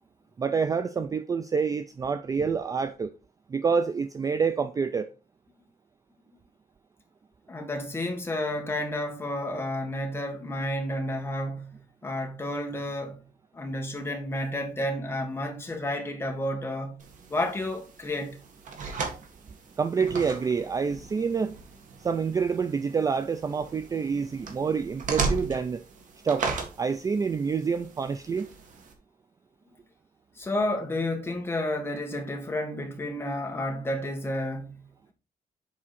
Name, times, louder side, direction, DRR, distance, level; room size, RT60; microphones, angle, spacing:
voice 1, 0.4-3.1 3.5-5.1 19.8-21.5 22.0-25.8 26.2-26.5 26.8-28.5, right 5 dB, 20° right, 0.4 m, -27 dB
voice 2, 7.5-13.2 13.5-17.0 17.3-18.4 30.4-35.1, left 1 dB, 15° left, 1.6 m, -31 dB
sound 1, 17.0-28.9, right 4 dB, 55° right, 1.8 m, -37 dB
7.5 x 4.8 x 4.2 m
cardioid pair, 170°, 16 cm